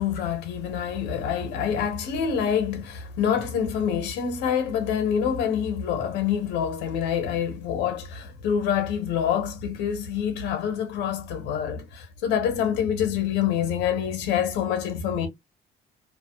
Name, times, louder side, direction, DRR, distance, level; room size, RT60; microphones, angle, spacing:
voice 1, 0.0-15.3, left 8 dB, 90° left, 0.9 m, -26 dB
2.5 x 2.3 x 2.3 m
cardioid pair, 110°, 17 cm